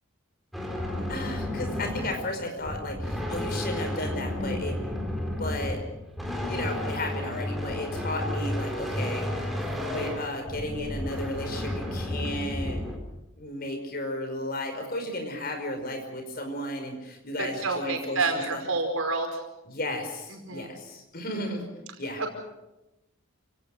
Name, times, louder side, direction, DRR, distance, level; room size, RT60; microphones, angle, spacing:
sound 1, 0.5-13.0, left 1 dB, ahead, 4.3 m, -32 dB
voice 1, 0.9-4.8 5.4-5.8 6.5-9.6 9.9-12.8 13.4-18.6 19.6-21.7 22.0-22.2, left 1 dB, 45° left, 5 dB, 5.1 m, -34 dB
voice 2, 17.4-19.4 20.5-20.7, right 3 dB, 80° right, 4 dB, 5.1 m, -28 dB
29.0 x 18.0 x 6.4 m, 0.95 s
head